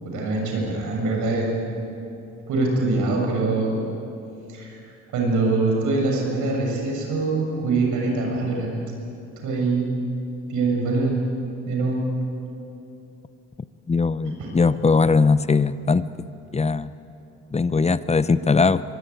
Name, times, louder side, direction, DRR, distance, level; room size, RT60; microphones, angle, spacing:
voice 1, 0.0-1.5 2.5-3.7 4.5-4.8 5.1-8.8 9.4-9.9 10.4-11.2 11.6-12.0 14.4-14.5, right 3 dB, 85° right, 0 dB, 6.8 m, -23 dB
voice 2, 13.9-16.0 16.5-16.9 17.5-18.8, left 4 dB, 20° left, 15 dB, 0.7 m, -20 dB
24.0 x 21.0 x 9.2 m, 2.8 s
cardioid pair, 90°, 30 cm